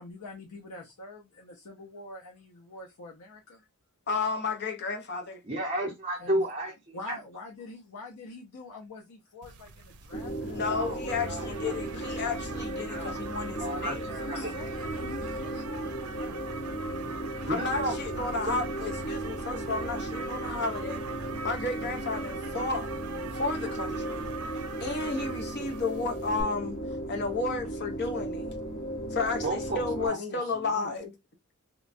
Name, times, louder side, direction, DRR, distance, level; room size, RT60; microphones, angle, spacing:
voice 1, 0.0-3.6 6.2-6.5 6.9-10.7 11.0-12.2 14.0-16.7 30.0-30.9, left 2 dB, 90° left, 0.6 m, -45 dB
voice 2, 4.1-5.4 10.4-14.0 14.4-14.5 17.4-21.0 21.4-22.9 23.3-24.3 24.8-26.8 27.1-28.5 29.1-31.1, left 4 dB, 50° left, 0.7 m, -32 dB
voice 3, 5.4-7.2 10.7-11.0 11.2-11.5 12.9-13.2 13.6-14.5 17.4-18.6 29.4-30.2, right 1 dB, 35° right, 0.7 m, -33 dB
sound 1, 9.4-26.4, right 4 dB, 85° right, 0.4 m, -42 dB
sound 2, 10.1-30.1, right 1 dB, 65° left, 1.7 m, -36 dB
2.9 x 2.2 x 2.5 m
head